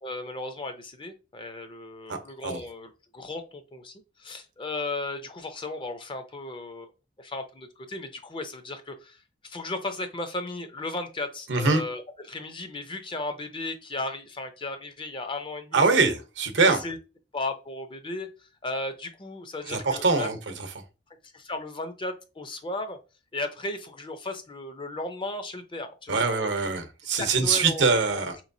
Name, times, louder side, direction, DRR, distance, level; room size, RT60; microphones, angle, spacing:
voice 1, 0.0-6.9 7.2-16.1 16.6-17.0 17.3-20.3 21.3-23.0 23.3-26.5 27.2-28.4, left 2 dB, 30° left, 0.5 m, -35 dB
voice 2, 11.5-11.8 15.7-16.8 19.7-20.4 26.1-28.3, right 4 dB, 75° right, 0.8 m, -23 dB
4.5 x 3.0 x 2.6 m
head